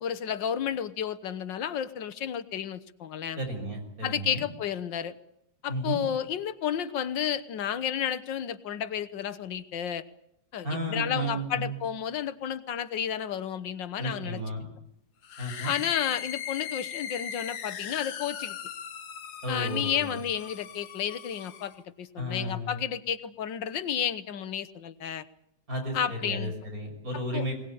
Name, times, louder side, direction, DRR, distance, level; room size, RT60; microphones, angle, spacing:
voice 1, 0.0-3.4 4.0-5.1 5.6-10.0 10.5-14.4 15.6-18.6 19.5-25.3 25.9-26.5 27.3-27.5, left 9 dB, 85° left, 14 dB, 1.8 m, -32 dB
voice 2, 3.4-4.4 5.7-6.0 10.6-11.7 14.0-14.7 15.4-15.7 19.4-20.1 22.2-22.8 25.7-27.6, equal, 50° right, 3 dB, 6.5 m, -33 dB
sound 1, 15.2-21.8, left 9 dB, 65° left, 1.6 m, -39 dB
21.5 x 19.5 x 8.6 m, 0.79 s
omnidirectional pair, 1.9 m